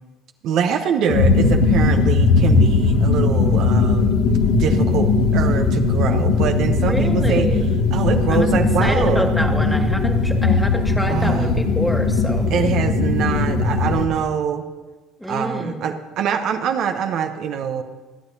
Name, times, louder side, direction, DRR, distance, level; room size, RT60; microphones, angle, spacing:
voice 1, 0.4-4.1 4.5-7.5 7.9-9.3 11.1-11.5 12.5-14.6 15.3-17.8, right 7 dB, 55° right, 6 dB, 0.9 m, -24 dB
sound 1, 1.1-14.1, left 3 dB, 65° left, 1.6 m, -18 dB
voice 2, 6.8-7.7 8.3-8.5 8.8-12.5 15.2-15.9, equal, 5° left, 4 dB, 2.0 m, -27 dB
26.5 x 9.7 x 2.8 m, 1.2 s
hypercardioid pair, 65°, 0 cm